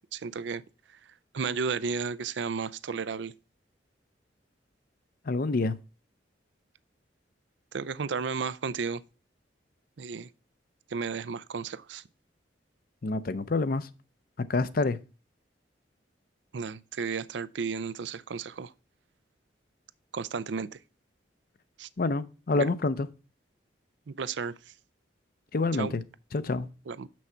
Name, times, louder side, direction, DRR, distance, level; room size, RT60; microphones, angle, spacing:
voice 1, 0.1-0.6 1.3-3.3 7.7-9.0 10.0-10.3 10.9-12.0 16.5-18.7 20.1-20.8 21.8-21.9 22.5-22.7 24.1-24.5 25.8-25.9 26.9-27.1, right 5 dB, 80° right, 0.5 m, -33 dB
voice 2, 5.3-5.8 13.0-13.9 14.4-15.0 22.0-23.1 25.5-26.0 26.3-26.7, left 3 dB, 55° left, 0.6 m, -27 dB
6.9 x 6.2 x 4.5 m
head